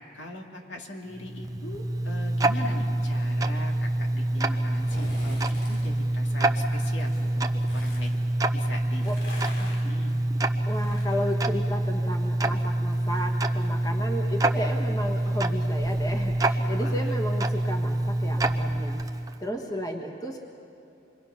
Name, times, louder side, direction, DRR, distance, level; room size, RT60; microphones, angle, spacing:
voice 1, 0.1-8.1 8.5-9.1 9.6-10.1 16.8-17.1, left 1 dB, 80° left, 1 dB, 2.5 m, -40 dB
Tick-tock, 1.1-19.4, right 1 dB, 20° right, 0.6 m, -26 dB
sound 1, 4.7-5.9 7.0-8.1 8.8-12.3 12.6-16.0 16.4-16.5, left 1 dB, 55° left, 6.5 m, -46 dB
voice 2, 10.7-19.0 19.4-20.4, equal, 20° left, 2 dB, 1.4 m, -33 dB
26.5 x 22.5 x 5.8 m, 2.8 s
head